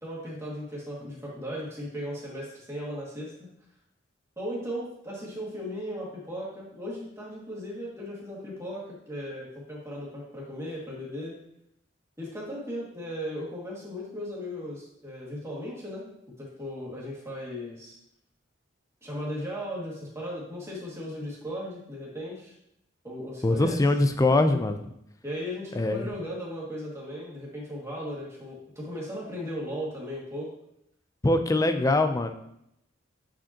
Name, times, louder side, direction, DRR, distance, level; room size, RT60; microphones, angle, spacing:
voice 1, 0.0-3.5 4.4-11.4 12.2-16.1 16.4-18.0 19.0-22.5 23.0-23.8 25.2-30.5, equal, 15° right, -5 dB, 2.0 m, -37 dB
voice 2, 23.4-24.8 25.7-26.1 31.2-32.3, left 2 dB, 20° left, 8 dB, 0.4 m, -23 dB
8.4 x 5.1 x 2.9 m, 0.77 s
head